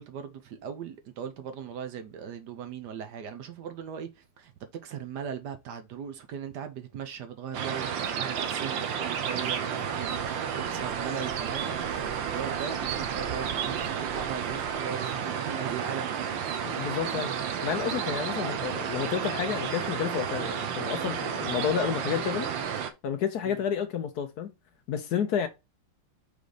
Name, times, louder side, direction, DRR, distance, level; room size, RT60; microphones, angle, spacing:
voice 1, 0.0-4.5 4.8-10.3 10.7-16.5 23.4-23.6, right 8 dB, 70° right, 1.4 m, -39 dB
sound 1, 7.5-22.9, right 7 dB, 85° right, 1.6 m, -31 dB
sound 2, 9.4-18.4, right 1 dB, 25° right, 2.5 m, -51 dB
voice 2, 16.7-17.3 17.6-22.5 23.0-24.5 24.9-25.5, left 8 dB, 65° left, 1.2 m, -30 dB
5.2 x 4.0 x 4.9 m
omnidirectional pair, 2.0 m